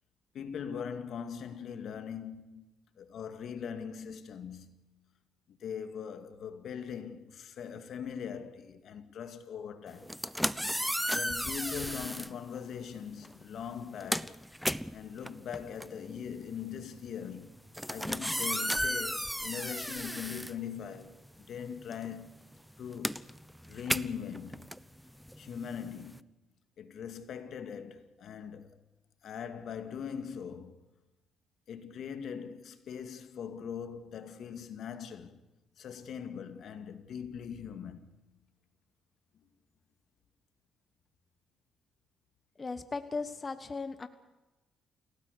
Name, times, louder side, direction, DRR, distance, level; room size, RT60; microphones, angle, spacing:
voice 1, 0.3-2.7 3.0-4.7 5.5-10.1 11.1-14.4 14.9-17.6 17.9-21.2 21.5-22.4 22.8-23.2 23.7-24.7 25.3-26.3 26.8-28.8 29.2-30.9 31.7-35.4 35.8-38.2, left 7 dB, 65° left, 2.2 m, -41 dB
sound 1, 10.0-12.3 13.2-13.4 13.7-21.3 21.5-26.2, equal, ahead, 0.8 m, -35 dB
voice 2, 42.6-44.1, left 4 dB, 30° left, 1.3 m, -37 dB
28.5 x 17.5 x 6.8 m
cardioid pair, 90°, 0 cm